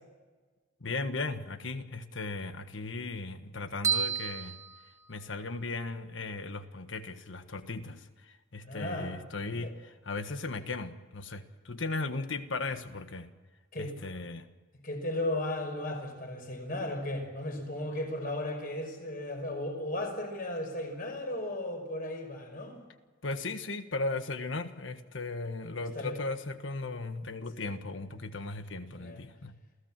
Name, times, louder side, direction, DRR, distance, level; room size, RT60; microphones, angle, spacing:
voice 1, 0.8-4.5 5.1-13.3 13.8-14.5 23.2-29.5, left 3 dB, 70° left, 9 dB, 1.5 m, -37 dB
sound 1, 3.8-5.6, right 7 dB, 15° right, 1.3 m, -32 dB
voice 2, 8.6-9.1 9.6-9.7 13.7-13.9 14.8-22.8 25.7-26.2 27.6-27.7 28.9-29.2, left 1 dB, 45° left, 3 dB, 5.8 m, -35 dB
28.0 x 16.5 x 7.5 m, 1.3 s
head